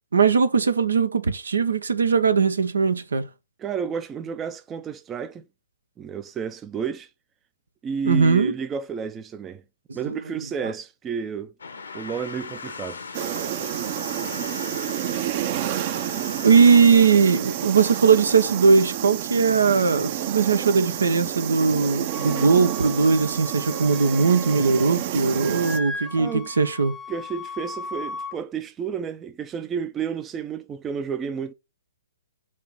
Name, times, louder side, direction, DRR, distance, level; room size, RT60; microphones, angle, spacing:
voice 1, 0.1-3.3 8.0-8.5 10.1-10.2 10.6-10.7 16.4-26.9, right 5 dB, 75° right, 1.0 m, -19 dB
voice 2, 3.6-5.4 6.0-7.1 7.8-9.6 9.9-11.5 11.9-13.0 26.2-26.5 27.1-31.5, right 6 dB, 15° right, 0.6 m, -31 dB
sound 1, 11.6-16.8, left 5 dB, 75° left, 1.2 m, -38 dB
sound 2, 13.1-25.8, right 11 dB, 40° right, 0.9 m, -30 dB
Wind instrument woodwind instrument, 22.1-25.0 25.3-28.4, left 2 dB, ahead, 0.9 m, -37 dB
6.5 x 3.0 x 5.5 m
hypercardioid pair, 130°, 0 cm